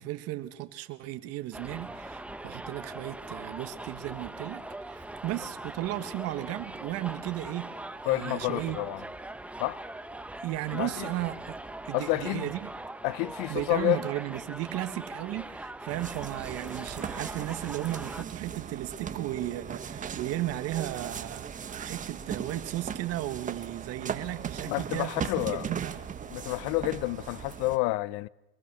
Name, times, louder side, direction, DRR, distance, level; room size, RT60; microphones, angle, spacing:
voice 1, 0.0-7.7 8.0-8.8 10.4-11.6 11.8-12.7 13.5-26.0, right 15 dB, 55° right, 1.7 m, -35 dB
Subway metro underground, 1.5-18.2, right 2 dB, 5° right, 1.0 m, -41 dB
voice 2, 8.1-9.0 9.6-9.8 10.7-11.1 11.9-12.5 13.0-14.0 24.7-25.7 26.3-28.3, left 20 dB, 60° left, 0.7 m, -29 dB
sound 1, 15.9-27.8, right 7 dB, 25° right, 1.6 m, -38 dB
24.5 x 22.5 x 6.2 m
supercardioid pair, 115°, 30 cm